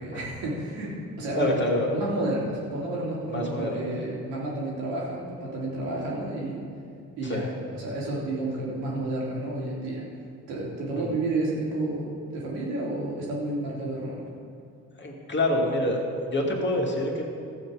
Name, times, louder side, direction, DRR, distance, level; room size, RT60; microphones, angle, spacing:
voice 1, 0.0-1.6 1.9-6.7 7.2-10.1 10.5-14.2, right 2 dB, 65° right, -5 dB, 3.0 m, -31 dB
voice 2, 1.3-1.9 3.3-3.8 7.2-7.5 11.0-11.1 15.0-17.2, left 1 dB, 25° left, -1 dB, 2.6 m, -27 dB
15.0 x 7.9 x 5.1 m, 2.4 s
figure-of-eight pair, 45°, 44 cm